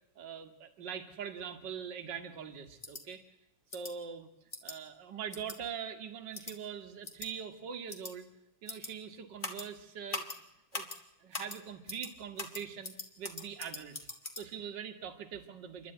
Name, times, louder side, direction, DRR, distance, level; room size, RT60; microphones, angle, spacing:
voice 1, 0.2-3.2 3.7-4.3 4.6-8.3 8.6-10.3 10.7-10.9 11.2-14.1 14.4-15.9, right 7 dB, 45° right, 7 dB, 1.8 m, -42 dB
sound 1, 2.8-3.0 3.7-3.9 4.5-4.7 5.3-5.6 6.3-6.5 7.0-7.3 7.9-8.1 8.7-8.9 9.4-9.6 10.1-10.4 10.7-11.0 11.3-11.6 11.9-12.1 12.4-14.4, left 3 dB, 20° left, 1.7 m, -41 dB
28.0 x 12.0 x 9.1 m, 0.89 s
omnidirectional pair, 3.5 m